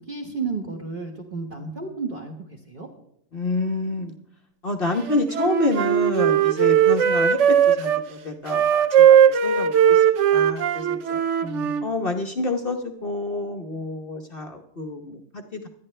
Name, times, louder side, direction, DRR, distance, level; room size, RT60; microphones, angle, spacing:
voice 1, 0.0-2.9 11.4-11.7, right 4 dB, 30° right, 2 dB, 1.5 m, -32 dB
voice 2, 3.3-4.1 4.6-10.0 10.3-11.2 11.8-15.7, left 2 dB, 40° left, 3 dB, 1.0 m, -28 dB
Wind instrument woodwind instrument, 5.1-8.0 8.5-11.9, right 9 dB, 60° right, 0.8 m, -18 dB
25.5 x 10.0 x 3.3 m, 0.74 s
omnidirectional pair, 1.9 m